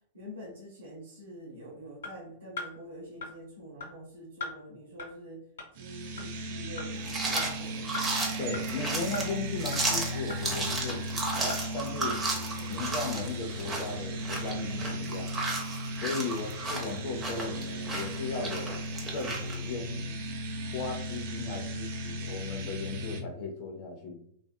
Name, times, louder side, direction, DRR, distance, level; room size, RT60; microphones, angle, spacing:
voice 1, 0.1-5.4 5.7-8.0 12.0-12.8 16.3-16.5 19.7-20.2, right 1 dB, 75° right, -5 dB, 0.8 m, -47 dB
sound 1, 2.0-2.1 2.6-2.7 3.2-3.3 3.8-3.9 4.4-4.5 5.0-5.1 5.6-5.7 6.2-6.3 6.8-6.9 7.4-7.5 7.9-8.1 8.5-8.6 9.1-9.2 9.7-9.8 10.3-10.4 10.9-11.0 11.5-11.6 12.1-12.2, left 3 dB, 75° left, 1.1 m, -37 dB
sound 2, 5.8-23.2, equal, 55° right, 0.5 m, -36 dB
sound 3, 7.0-19.6, right 2 dB, 15° right, 0.7 m, -34 dB
voice 2, 8.4-12.2 12.7-15.3 16.0-18.8 19.1-20.0 20.7-24.2, left 4 dB, 50° left, 2 dB, 0.5 m, -36 dB
2.5 x 2.3 x 2.2 m, 0.67 s
hypercardioid pair, 105°, 0 cm